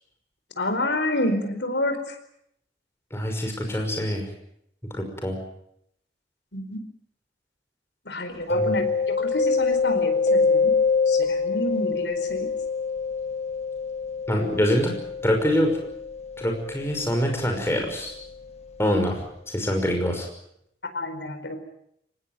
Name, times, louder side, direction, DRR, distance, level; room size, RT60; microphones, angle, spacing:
voice 1, 0.6-2.2 6.5-6.8 8.1-10.7 11.1-12.5 20.9-21.6, left 1 dB, 85° left, 7 dB, 4.6 m, -29 dB
voice 2, 3.1-4.3 4.8-5.4 8.5-8.8 14.3-14.9 15.2-15.8 16.4-18.1 18.8-20.3, equal, 15° left, 3 dB, 5.8 m, -25 dB
Mallet percussion, 8.5-18.1, left 4 dB, 40° left, 1.6 m, -25 dB
24.5 x 19.0 x 9.3 m, 0.74 s
head